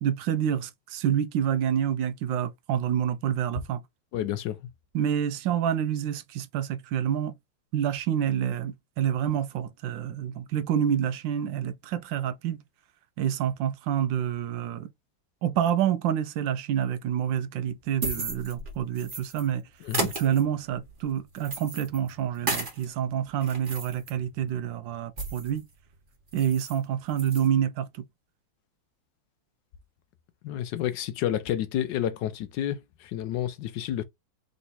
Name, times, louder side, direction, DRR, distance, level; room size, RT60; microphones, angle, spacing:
voice 1, 0.0-3.8 4.9-7.3 7.7-12.6 13.2-14.9 15.4-19.6 20.0-25.7 26.3-28.0, right 9 dB, 75° right, 1.3 m, -28 dB
voice 2, 4.1-4.6 19.8-20.1 30.4-34.0, left 11 dB, 75° left, 1.2 m, -30 dB
sound 1, 17.7-19.5 19.8-22.8 23.2-25.6 25.9-26.0 26.3-26.8 27.1-27.5, right 3 dB, 30° right, 1.4 m, -35 dB
3.8 x 3.1 x 4.1 m
omnidirectional pair, 2.1 m